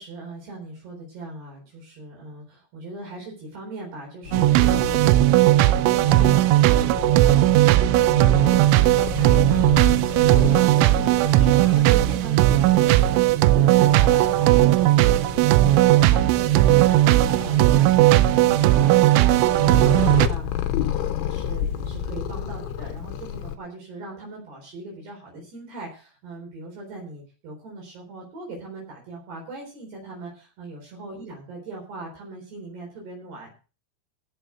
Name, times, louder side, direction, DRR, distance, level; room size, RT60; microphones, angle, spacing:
voice 1, 0.0-33.5, right 2 dB, 55° right, -1 dB, 5.9 m, -40 dB
Purr, 4.2-23.6, left 9 dB, 80° left, 3.5 m, -32 dB
sound 1, 4.3-20.3, right 15 dB, 80° right, 3.0 m, -17 dB
15.5 x 6.5 x 6.2 m, 0.35 s
omnidirectional pair, 5.7 m